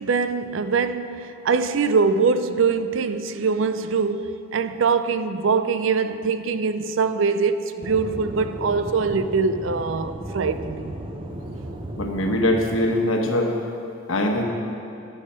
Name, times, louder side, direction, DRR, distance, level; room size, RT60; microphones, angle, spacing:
voice 1, 0.0-11.0, right 5 dB, 65° right, 0.5 m, -23 dB
Aircraft / Engine, 7.8-12.8, right 1 dB, 25° right, 0.9 m, -35 dB
voice 2, 12.0-13.5 14.1-14.4, left 1 dB, 80° left, 1.3 m, -22 dB
11.5 x 8.6 x 5.6 m
head